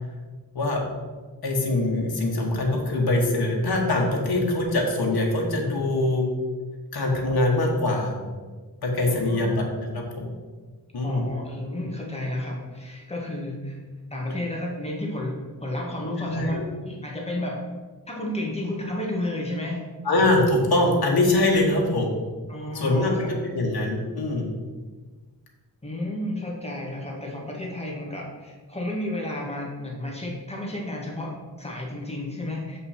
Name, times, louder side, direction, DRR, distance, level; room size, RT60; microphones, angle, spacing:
voice 1, 1.4-6.3 6.9-8.2 8.8-10.3 10.9-11.3 16.2-16.6 20.0-22.1 22.7-24.5, left 2 dB, 65° left, -1 dB, 1.4 m, -23 dB
voice 2, 9.0-9.5 11.0-13.8 14.1-17.6 18.1-19.8 22.5-23.6 25.8-32.8, left 1 dB, 15° left, -3 dB, 1.6 m, -32 dB
7.4 x 5.4 x 4.3 m, 1.4 s
wide cardioid pair, 125°, 40 cm